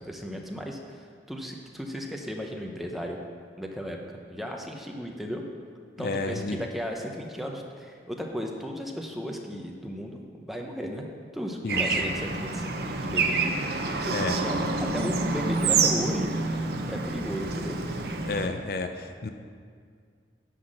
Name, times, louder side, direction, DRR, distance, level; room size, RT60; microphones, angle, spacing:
voice 1, 0.1-3.2 3.6-5.4 6.0-11.1 11.3-12.6 13.0-13.5 14.0-16.3 16.9-17.8, equal, ahead, 1 dB, 0.7 m, -35 dB
voice 2, 6.0-6.6 11.6-12.0 14.1-14.3 18.2-19.3, left 3 dB, 55° left, 7 dB, 0.5 m, -31 dB
Bird / Traffic noise roadway noise, 11.7-18.5, right 3 dB, 55° right, 0.7 m, -27 dB
10.0 x 5.8 x 6.4 m, 2.1 s
head